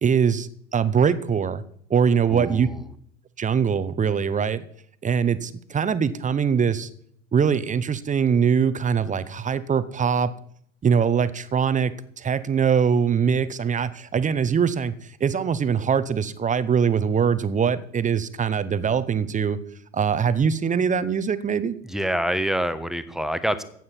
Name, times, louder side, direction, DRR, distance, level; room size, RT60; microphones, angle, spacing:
voice 1, 0.0-1.6 1.9-2.7 3.4-4.6 5.0-6.9 7.3-10.3 10.8-14.9 15.2-19.6 19.9-21.8, right 7 dB, 20° right, 15 dB, 0.9 m, -22 dB
voice 2, 2.3-2.8 21.8-23.6, equal, ahead, 12 dB, 1.1 m, -26 dB
15.0 x 9.3 x 4.5 m, 0.65 s
figure-of-eight pair, 75°, 37 cm